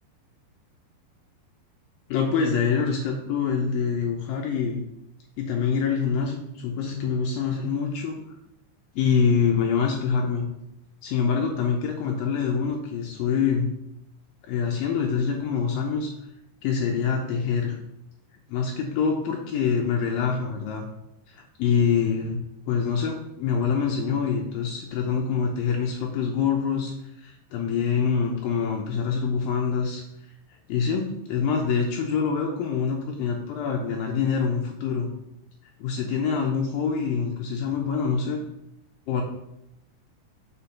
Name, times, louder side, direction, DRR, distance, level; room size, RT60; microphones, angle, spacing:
voice 1, 2.1-4.8 5.4-8.2 9.0-10.5 11.0-13.7 14.5-16.1 16.6-17.8 18.5-20.9 21.3-22.4 22.7-26.9 27.2-30.0 30.7-35.1 35.8-38.4 39.1-39.2, left 6 dB, 80° left, 0 dB, 2.0 m, -25 dB
6.9 x 5.1 x 5.7 m, 0.85 s
omnidirectional pair, 5.2 m